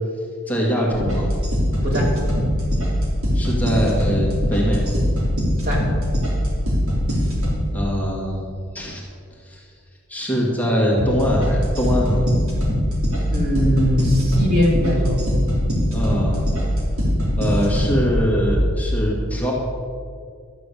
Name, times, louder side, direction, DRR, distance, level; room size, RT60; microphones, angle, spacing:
voice 1, 0.5-1.3 3.3-5.0 7.7-9.0 9.4-9.7 10.1-12.2 15.9-16.5 17.4-19.5, equal, 5° left, -4 dB, 1.9 m, -22 dB
sound 1, 0.9-7.6 11.0-18.8, equal, 80° right, 3.5 m, -22 dB
voice 2, 1.8-2.1 5.6-5.9 13.3-15.2, equal, 45° right, -3 dB, 3.1 m, -20 dB
12.0 x 6.8 x 8.3 m, 2.2 s
head